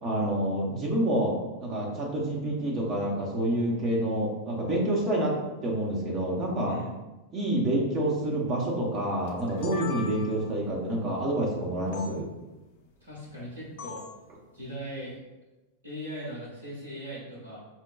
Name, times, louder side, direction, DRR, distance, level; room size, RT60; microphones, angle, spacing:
voice 1, 0.0-6.8 7.3-12.3, right 1 dB, 30° right, -3 dB, 0.8 m, -28 dB
sound 1, 9.3-10.5 11.9-12.1 13.8-14.2, left 5 dB, 55° left, 0.7 m, -40 dB
voice 2, 13.0-14.0 14.5-15.2 15.8-17.6, equal, 75° right, -6 dB, 1.2 m, -39 dB
5.7 x 2.2 x 2.3 m, 1.1 s
figure-of-eight pair, 90°, 0 cm